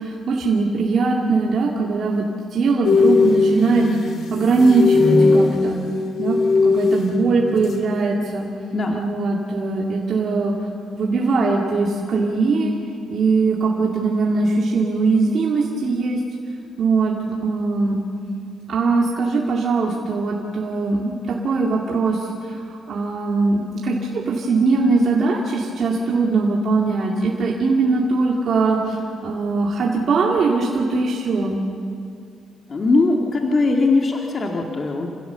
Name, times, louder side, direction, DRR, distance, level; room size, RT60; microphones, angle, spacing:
voice 1, 0.0-2.3 2.5-3.9 4.3-5.8 6.2-6.4 6.6-8.5 8.9-10.5 10.9-12.7 13.1-16.2 16.8-17.1 17.4-18.0 18.7-21.1 21.4-22.2 22.9-29.0 29.2-31.6, right 3 dB, 55° right, -2 dB, 2.3 m, -20 dB
sound 1, 2.8-8.0 8.2-8.5, left 3 dB, 65° left, 2.7 m, -19 dB
voice 2, 32.7-35.1, left 3 dB, 40° left, 1 dB, 2.0 m, -20 dB
28.0 x 16.0 x 7.0 m, 2.4 s
cardioid pair, 90°, 0 cm